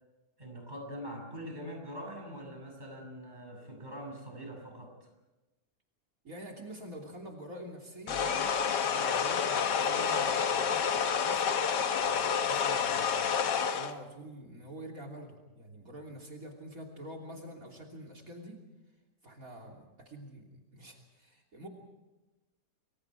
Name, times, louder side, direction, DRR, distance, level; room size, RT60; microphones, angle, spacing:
voice 1, 0.4-5.1, equal, 25° right, 2 dB, 6.6 m, -43 dB
voice 2, 6.2-8.2 8.8-11.5 12.0-13.4 13.7-18.6 19.2-20.5 20.7-21.7, equal, 55° right, 4 dB, 3.5 m, -46 dB
sound 1, 8.1-13.9, left 7 dB, 85° left, 1.8 m, -29 dB
29.5 x 22.5 x 4.7 m, 1.1 s
omnidirectional pair, 1.8 m